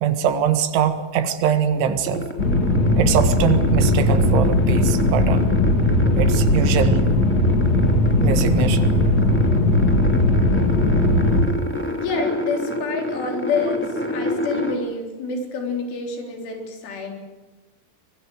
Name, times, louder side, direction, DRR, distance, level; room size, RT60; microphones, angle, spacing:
voice 1, 0.0-2.3 3.0-5.5 6.2-7.1 8.2-9.0, right 8 dB, 80° right, 8 dB, 4.0 m, -22 dB
sound 1, 2.1-14.7, left 1 dB, 5° left, 1.3 m, -29 dB
sound 2, 2.4-11.4, left 1 dB, 35° left, 1.5 m, -18 dB
voice 2, 12.0-17.1, left 4 dB, 85° left, 2 dB, 6.2 m, -28 dB
24.5 x 23.0 x 8.1 m, 1.2 s
omnidirectional pair, 5.4 m